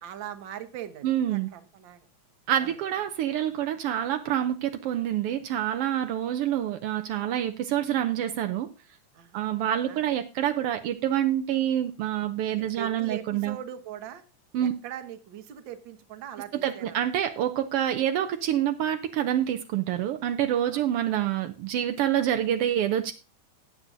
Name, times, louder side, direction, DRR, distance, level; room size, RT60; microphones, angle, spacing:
voice 1, 0.0-2.1 2.6-2.8 9.1-9.5 9.9-10.0 12.5-14.2 14.6-17.0 20.7-20.8, right 10 dB, 65° right, 9 dB, 1.2 m, -41 dB
voice 2, 1.0-1.5 2.5-8.7 9.3-13.6 14.5-14.7 16.5-23.1, right 11 dB, 90° right, 7 dB, 1.2 m, -27 dB
17.5 x 7.7 x 2.6 m, 0.30 s
omnidirectional pair, 3.4 m